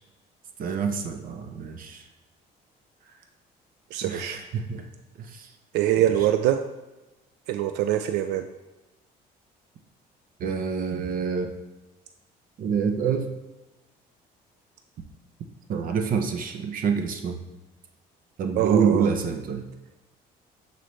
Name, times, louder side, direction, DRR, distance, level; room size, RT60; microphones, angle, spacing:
voice 1, 0.6-2.0 4.0-4.8 5.2-5.5 6.0-6.1 10.4-11.5 12.6-13.3 15.7-17.4 18.4-19.7, right 6 dB, 55° right, 5 dB, 0.7 m, -27 dB
voice 2, 3.9-4.4 5.7-6.6 7.5-8.5 18.6-19.1, right 11 dB, 85° right, 8 dB, 0.4 m, -24 dB
7.6 x 4.1 x 3.2 m, 1.0 s
cardioid pair, 110°, 17 cm